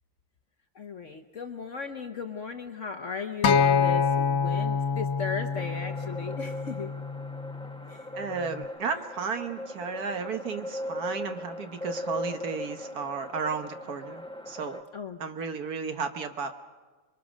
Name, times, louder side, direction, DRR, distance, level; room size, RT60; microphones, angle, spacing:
voice 1, 0.7-6.9 7.9-8.1 14.9-15.2, left 5 dB, 50° left, 6 dB, 1.0 m, -36 dB
Acoustic guitar, 3.4-7.7 8.5-8.6, left 6 dB, 85° left, 1.7 m, -26 dB
sound 1, 5.5-14.8, left 1 dB, 10° left, 0.3 m, -39 dB
voice 2, 8.1-14.8 15.2-16.5, right 5 dB, 55° right, 8 dB, 1.5 m, -34 dB
27.0 x 22.5 x 6.3 m, 1.3 s
omnidirectional pair, 2.1 m